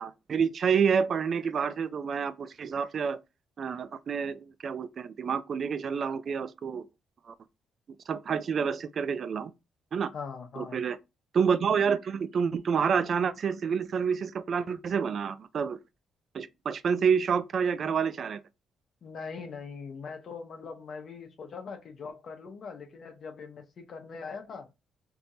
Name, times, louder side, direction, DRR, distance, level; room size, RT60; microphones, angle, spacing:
voice 1, 0.0-3.2 3.6-6.8 7.3-7.4 8.1-9.5 9.9-10.1 10.6-11.0 11.3-15.8 16.3-18.4, right 6 dB, 50° right, 0.3 m, -28 dB
voice 2, 10.1-10.8 19.0-24.7, left 5 dB, 55° left, 0.8 m, -41 dB
3.4 x 2.8 x 2.6 m
cardioid pair, 90°, 0 cm